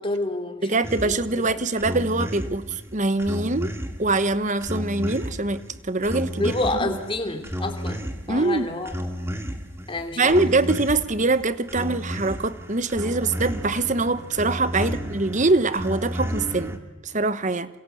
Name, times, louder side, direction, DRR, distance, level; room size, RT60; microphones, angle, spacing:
voice 1, 0.0-0.6 1.0-1.1 6.4-8.9 9.9-10.4 14.8-14.9, left 2 dB, 25° left, 5 dB, 2.9 m, -28 dB
voice 2, 0.6-3.7 4.0-6.5 6.8-7.0 8.3-8.7 10.2-17.7, right 3 dB, 35° right, 13 dB, 1.1 m, -23 dB
sound 1, 0.8-16.8, equal, 15° right, 2.3 m, -33 dB
27.5 x 27.0 x 7.9 m, 1.1 s
head